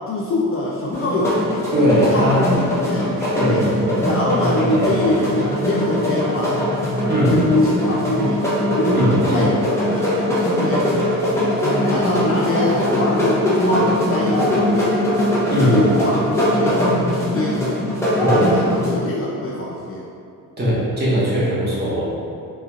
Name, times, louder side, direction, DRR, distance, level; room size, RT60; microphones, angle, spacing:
voice 1, 0.1-1.5 2.0-3.7 4.0-6.6 7.2-9.6 9.9-10.1 10.6-10.9 11.6-15.0 15.6-17.6 18.1-20.1, left 2 dB, 40° left, -4 dB, 0.4 m, -23 dB
sound 1, 0.9-18.9, left 1 dB, 5° left, 0.8 m, -21 dB
voice 2, 1.7-2.6 3.2-4.0 4.4-5.0 7.1-7.4 8.9-9.5 15.5-15.8 18.2-18.5 20.6-22.0, equal, 25° right, -8 dB, 1.2 m, -20 dB
3.6 x 3.1 x 2.4 m, 2.6 s
cardioid pair, 100°, 37 cm